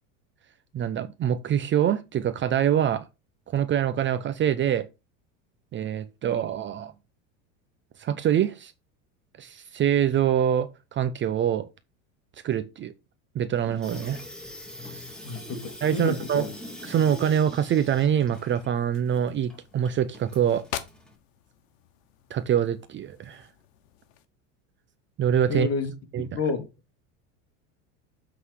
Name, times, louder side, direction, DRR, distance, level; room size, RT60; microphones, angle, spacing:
voice 1, 0.7-3.0 3.5-4.9 5.7-6.9 8.0-8.7 9.4-11.7 12.4-12.9 13.3-14.2 15.0-15.1 15.8-16.5 16.8-20.6 22.3-23.5 25.2-25.7 26.1-26.3, right 9 dB, 30° right, 0.6 m, -25 dB
Water tap faucet / Sink (filling or washing), 13.6-21.1, left 1 dB, ahead, 2.1 m, -43 dB
voice 2, 15.2-16.5 25.5-25.9 26.2-26.7, left 4 dB, 40° left, 2.0 m, -30 dB
sound 1, 16.6-24.3, left 11 dB, 85° left, 1.2 m, -45 dB
8.1 x 4.0 x 4.8 m
supercardioid pair, 120°, 38 cm